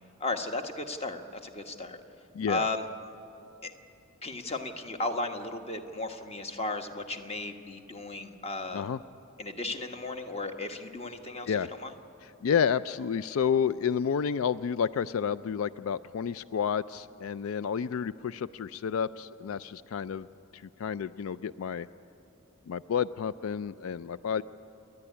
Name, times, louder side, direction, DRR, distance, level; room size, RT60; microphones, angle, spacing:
voice 1, 0.2-2.0 2.5-2.8 3.6-3.7 4.2-8.9 9.4-11.9, left 2 dB, 30° left, 6 dB, 1.2 m, -35 dB
voice 2, 2.3-2.7 8.7-9.0 11.5-11.7 12.4-20.3 20.5-21.9 22.7-24.4, left 7 dB, 85° left, 16 dB, 0.4 m, -30 dB
29.0 x 11.0 x 9.7 m, 2.9 s
head